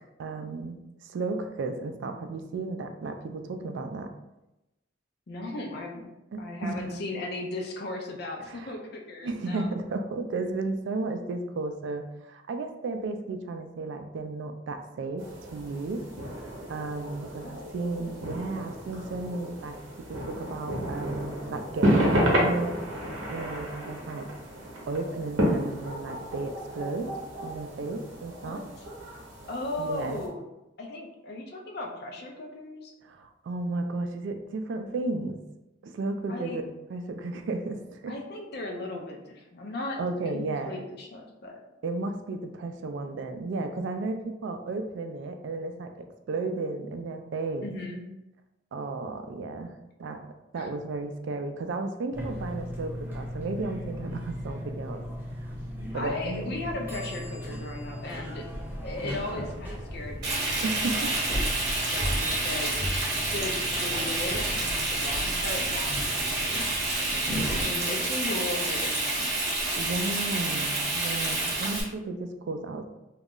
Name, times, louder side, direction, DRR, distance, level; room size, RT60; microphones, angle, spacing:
voice 1, 0.2-4.1 6.3-7.0 8.4-8.7 9.2-16.0 16.7-19.8 20.1-22.8 23.3-24.3 24.9-27.1 27.4-28.6 29.8-30.2 33.0-35.4 35.8-38.1 40.0-40.8 41.8-47.7 48.7-49.7 50.0-50.2 50.5-55.0 55.4-55.6 55.9-56.6 60.6-61.1 67.1-67.5 69.7-72.9, right 3 dB, 70° right, 6 dB, 0.3 m, -34 dB
voice 2, 5.3-6.1 6.4-9.7 17.4-17.7 18.0-18.2 28.4-28.6 29.5-30.5 30.8-32.9 36.3-36.6 38.1-40.0 40.3-41.6 47.6-48.0 50.6-50.7 55.9-58.5 58.8-60.6 61.0-61.2 61.9-62.7 63.3-66.7 67.0-69.6, left 2 dB, 55° left, 2 dB, 0.5 m, -37 dB
sound 1, 15.2-30.3, equal, 85° right, 0.7 m, -31 dB
sound 2, 52.1-67.6, equal, 10° right, 0.6 m, -36 dB
Frying (food), 60.2-71.8, right 2 dB, 50° right, 0.9 m, -29 dB
2.3 x 2.0 x 3.6 m, 0.95 s
head